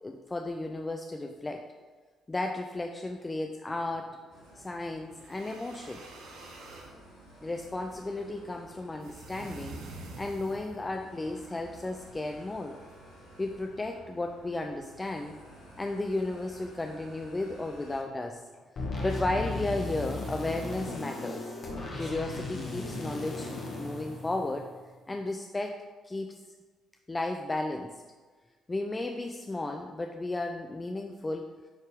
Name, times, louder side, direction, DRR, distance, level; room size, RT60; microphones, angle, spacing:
voice 1, 0.0-1.7 2.3-4.2 4.6-6.0 7.4-9.8 10.2-12.8 13.4-15.4 15.8-18.4 18.7-21.4 22.0-24.7 25.1-26.4 27.1-28.0 28.7-31.5, left 2 dB, 20° left, 4 dB, 0.5 m, -34 dB
sound 1, 4.3-18.0, equal, 80° left, 2.0 m, -53 dB
sound 2, 5.1-6.9 9.0-10.9, right 2 dB, 65° right, 1.1 m, -46 dB
sound 3, 18.8-24.9, left 2 dB, 50° left, 1.7 m, -36 dB
9.5 x 4.4 x 3.5 m, 1.4 s
figure-of-eight pair, 45°, 0 cm